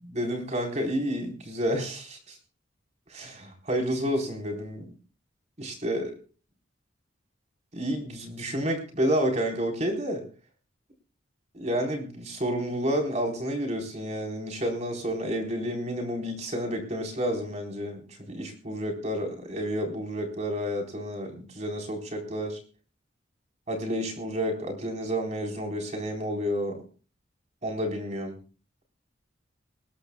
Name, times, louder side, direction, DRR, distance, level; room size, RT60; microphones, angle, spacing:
voice 1, 0.1-2.4 3.1-4.8 5.6-6.1 7.7-10.2 11.5-18.0 18.3-22.6 23.7-26.8 27.6-28.4, equal, 35° right, 2 dB, 4.2 m, -30 dB
20.5 x 20.5 x 2.3 m, 0.37 s
head